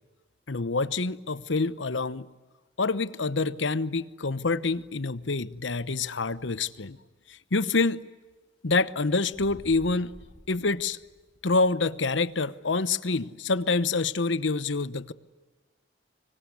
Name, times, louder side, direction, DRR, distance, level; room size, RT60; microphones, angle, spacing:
voice 1, 0.5-2.3 2.8-7.0 7.3-8.0 8.6-10.1 10.5-11.0 11.4-15.1, left 3 dB, 80° left, 1.0 m, -27 dB
sound 1, 9.3-11.6, equal, 25° left, 4.3 m, -50 dB
25.0 x 24.5 x 9.6 m
head